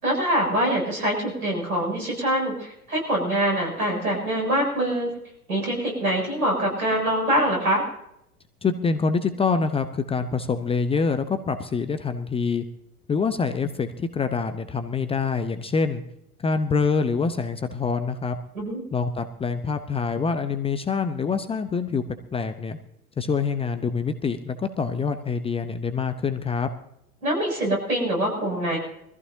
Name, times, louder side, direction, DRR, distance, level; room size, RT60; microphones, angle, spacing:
voice 1, 0.0-5.1 5.5-7.8 18.5-18.8 27.2-28.8, right 1 dB, 75° right, 1 dB, 7.1 m, -24 dB
voice 2, 8.6-12.6 13.1-16.0 16.4-18.4 18.9-22.0 22.3-22.8 23.2-26.7, left 5 dB, 15° left, 9 dB, 0.7 m, -25 dB
24.0 x 14.5 x 2.7 m, 0.79 s
figure-of-eight pair, 85°, 44 cm